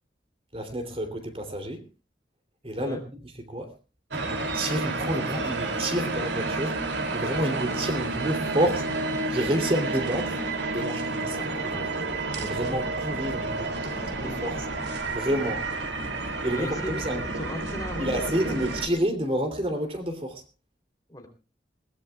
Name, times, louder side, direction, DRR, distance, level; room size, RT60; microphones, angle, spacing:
voice 1, 0.5-1.8 2.6-3.0 3.5-3.7 4.1-6.8 7.1-8.9 9.3-10.4 10.7-11.9 12.4-14.6 15.1-15.7 16.4-17.2 18.0-20.4, right 1 dB, 30° right, 2.8 m, -29 dB
sound 1, 4.1-18.9, right 2 dB, 70° right, 2.6 m, -30 dB
voice 2, 13.8-14.7 16.5-18.5 21.1-21.3, left 1 dB, 20° left, 3.1 m, -38 dB
21.0 x 18.5 x 2.3 m
head